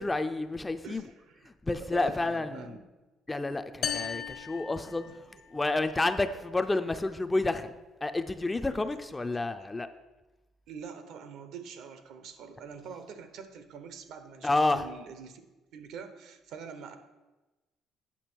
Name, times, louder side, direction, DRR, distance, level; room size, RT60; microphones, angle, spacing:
voice 1, 0.0-1.0 1.6-2.7 3.3-5.1 5.5-7.7 8.0-9.9 14.4-14.8, left 2 dB, 15° left, 9 dB, 0.3 m, -29 dB
voice 2, 0.8-1.5 1.8-2.8 10.7-15.4 15.7-17.0, right 6 dB, 70° right, 9 dB, 0.8 m, -44 dB
sound 1, 3.8-5.6, left 7 dB, 50° left, 0.6 m, -36 dB
8.5 x 6.1 x 4.4 m, 1.1 s
cardioid pair, 145°, 0 cm